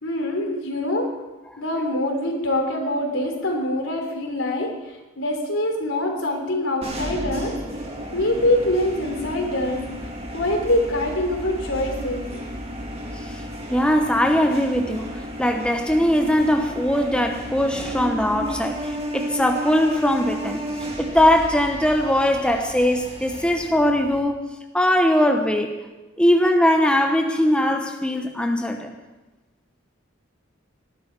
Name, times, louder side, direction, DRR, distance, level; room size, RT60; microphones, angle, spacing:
voice 1, 0.0-1.1 1.6-7.5 7.8-9.8 10.3-12.3, left 1 dB, 80° left, 2 dB, 3.4 m, -24 dB
sound 1, 6.8-24.2, equal, 30° right, 2.2 m, -33 dB
voice 2, 13.7-20.7 21.0-24.5 24.7-25.8 26.2-28.9, left 1 dB, 5° left, 4 dB, 0.9 m, -20 dB
19.0 x 12.5 x 4.7 m, 1.1 s
head